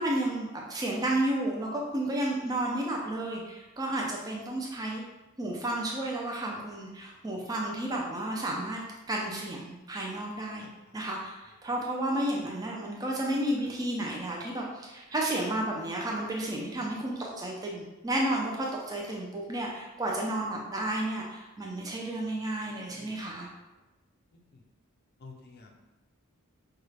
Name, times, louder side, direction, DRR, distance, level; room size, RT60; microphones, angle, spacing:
voice 1, 0.0-5.0 5.4-8.8 9.1-10.7 10.9-23.5, right 1 dB, 15° right, -2 dB, 0.4 m, -32 dB
voice 2, 7.4-7.7 10.6-10.9 16.8-16.9 22.7-23.5 24.3-24.6 25.2-25.7, left 3 dB, 50° left, 1 dB, 0.6 m, -53 dB
4.7 x 2.3 x 3.2 m, 1.1 s
head